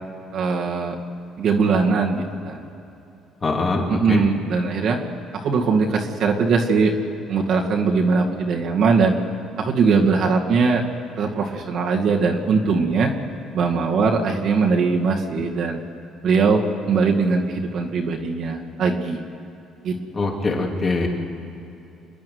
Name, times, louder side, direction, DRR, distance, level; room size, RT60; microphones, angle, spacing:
voice 1, 0.3-0.9 1.4-2.6 3.9-5.0 5.4-6.9 7.3-9.2 9.6-10.8 11.2-13.1 13.5-15.8 16.2-19.2 19.8-20.0, right 4 dB, 60° right, -1 dB, 2.2 m, -20 dB
voice 2, 3.4-4.2 20.1-21.1, left 3 dB, 30° left, 0 dB, 3.2 m, -23 dB
27.5 x 10.5 x 9.5 m, 2.9 s
cardioid pair, 100°, 0 cm